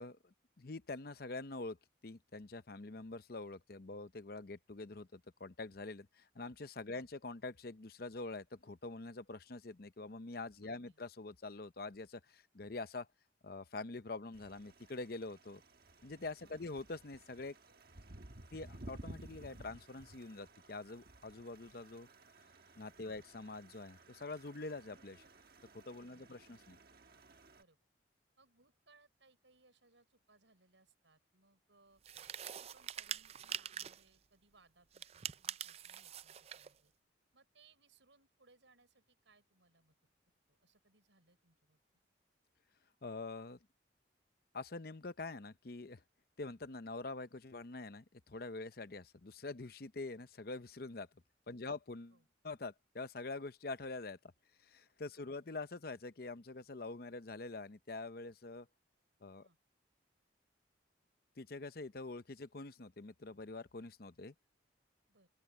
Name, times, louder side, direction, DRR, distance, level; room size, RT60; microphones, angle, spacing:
voice 1, 0.0-1.8 2.0-13.1 13.4-15.6 16.0-17.6 18.5-22.1 22.8-25.2 25.7-26.8 43.0-43.6 44.5-46.0 46.4-51.1 51.5-52.2 52.4-54.2 54.6-58.7 59.2-59.5 61.4-64.3, left 3 dB, 55° left, 0.8 m, -45 dB
voice 2, 10.6-11.0 16.4-16.7 23.0-23.2 26.1-26.4 27.5-27.8 28.4-32.0 32.4-36.9 37.3-40.0 40.5-41.8 51.5-51.8 52.1-52.3 55.1-55.3 59.4-59.6 65.1-65.3, right 3 dB, 85° right, 6.0 m, -69 dB
sound 1, 14.3-27.6, right 2 dB, 55° right, 1.4 m, -56 dB
sound 2, 32.0-34.1 34.9-36.7, right 9 dB, 35° right, 0.4 m, -45 dB
open air
head